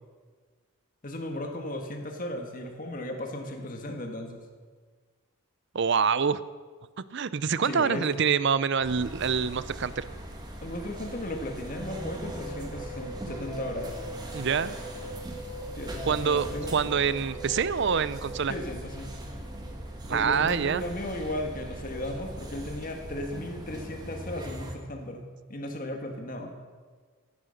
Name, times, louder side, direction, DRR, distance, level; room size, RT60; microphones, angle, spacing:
voice 1, 1.0-4.4 7.6-8.3 10.6-14.0 15.7-16.8 18.5-19.1 20.1-25.2 25.5-26.5, left 1 dB, 40° left, 3 dB, 1.6 m, -36 dB
voice 2, 5.7-6.4 7.1-10.0 14.3-14.7 16.0-18.5 20.1-20.8, right 6 dB, 55° right, 16 dB, 0.5 m, -26 dB
sound 1, 8.8-24.7, right 1 dB, 20° right, 1.8 m, -40 dB
sound 2, 11.8-18.0, left 1 dB, 10° left, 2.6 m, -41 dB
16.0 x 11.5 x 6.6 m, 1.5 s
head